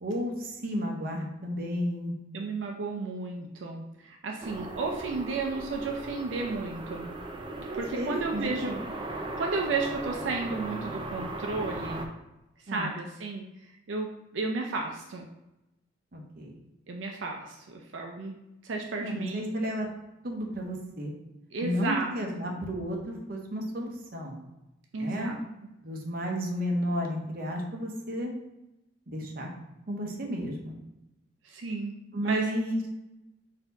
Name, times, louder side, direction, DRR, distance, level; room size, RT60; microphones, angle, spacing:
voice 1, 0.0-2.2 7.5-8.8 12.7-13.0 16.1-16.5 19.0-19.9 20.2-21.1 21.6-24.4 25.0-25.3 25.8-28.3 29.1-29.5 29.9-30.7 32.1-32.8, equal, 50° right, 1 dB, 0.7 m, -32 dB
voice 2, 2.3-7.1 7.7-8.7 9.4-12.1 12.7-15.3 16.9-19.7 21.5-22.5 24.9-25.4 31.4-31.9 32.2-32.5, right 3 dB, 85° right, 1 dB, 0.5 m, -33 dB
sound 1, 4.4-12.1, right 2 dB, 25° right, 0.4 m, -37 dB
4.1 x 2.7 x 4.0 m, 0.94 s
head